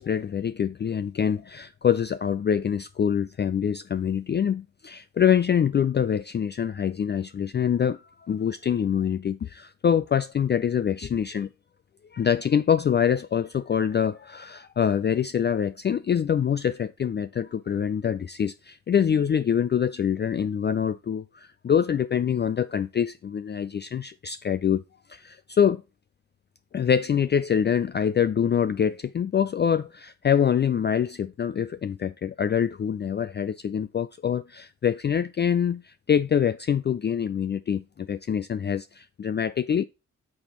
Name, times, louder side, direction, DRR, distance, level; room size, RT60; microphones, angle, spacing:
voice 1, 0.0-11.5 12.1-24.8 25.1-25.8 26.7-39.8, left 8 dB, 35° left, 0.4 m, -25 dB
8.5 x 4.2 x 3.1 m
supercardioid pair, 45°, 33 cm